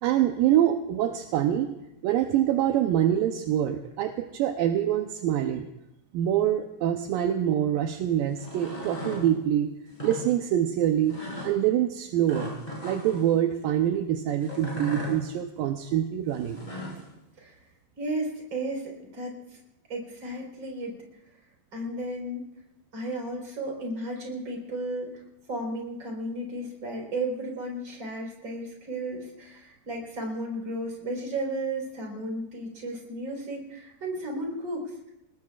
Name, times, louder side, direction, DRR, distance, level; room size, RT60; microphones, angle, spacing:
voice 1, 0.0-1.8 2.0-5.7 6.1-9.7 10.0-11.2 11.4-12.6 12.8-16.6, right 11 dB, 80° right, 5 dB, 2.4 m, -25 dB
sound 1, 8.3-9.2 9.9-10.2 11.1-11.5 12.3-13.2 14.4-15.1 16.3-17.0, equal, 10° left, 8.0 m, -36 dB
voice 2, 18.0-19.6 19.9-20.9 21.7-22.4 22.9-25.1 25.5-35.1, right 1 dB, 30° right, -1 dB, 5.0 m, -34 dB
29.0 x 19.5 x 2.5 m, 0.89 s
omnidirectional pair, 4.1 m